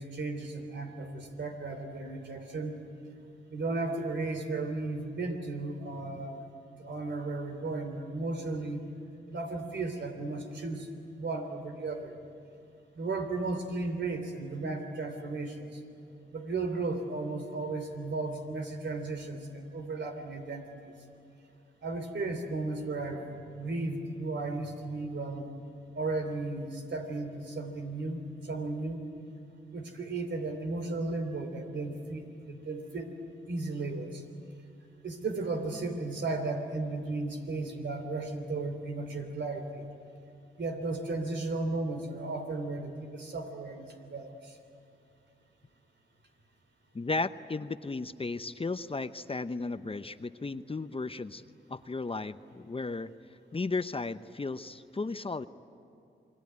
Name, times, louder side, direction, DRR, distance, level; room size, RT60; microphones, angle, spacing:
voice 1, 0.0-2.8 3.5-6.4 6.8-8.8 9.3-10.9 11.1-12.2 13.0-15.8 16.3-20.9 21.8-23.3 23.5-25.5 26.0-29.0 29.7-33.1 33.5-34.2 35.0-39.9 40.6-44.5, right 3 dB, 70° right, 5 dB, 3.4 m, -35 dB
voice 2, 46.9-51.4 51.7-53.1 53.5-55.5, left 3 dB, 30° left, 12 dB, 0.8 m, -35 dB
28.0 x 21.5 x 9.6 m, 2.6 s
cardioid pair, 60°, 19 cm